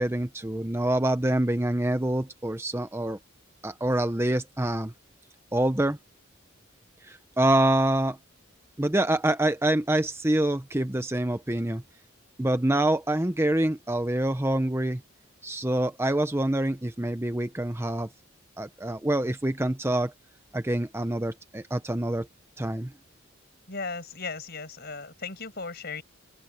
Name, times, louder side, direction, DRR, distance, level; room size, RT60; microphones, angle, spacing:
voice 1, 0.0-3.2 3.6-4.9 5.5-6.0 7.0-8.2 8.8-11.8 12.4-15.0 15.4-18.1 18.6-20.1 20.5-22.3 22.6-22.9, right 1 dB, 10° right, 0.8 m, -26 dB
voice 2, 23.7-26.0, left 4 dB, 50° left, 6.1 m, -36 dB
open air
head